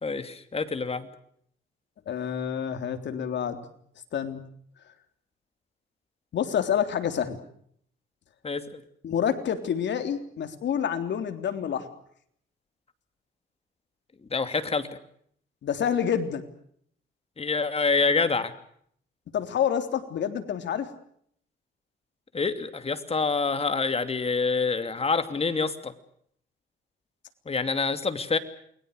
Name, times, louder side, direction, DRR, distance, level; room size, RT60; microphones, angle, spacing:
voice 1, 0.0-1.1 8.4-8.8 14.3-14.9 17.4-18.5 22.3-25.9 27.5-28.4, left 4 dB, 30° left, 9 dB, 2.8 m, -26 dB
voice 2, 2.1-3.6 4.1-4.4 6.3-7.4 9.0-11.9 15.6-16.4 19.3-20.9, left 8 dB, 65° left, 7 dB, 3.5 m, -28 dB
29.0 x 22.0 x 6.7 m, 0.66 s
cardioid pair, 90°, 20 cm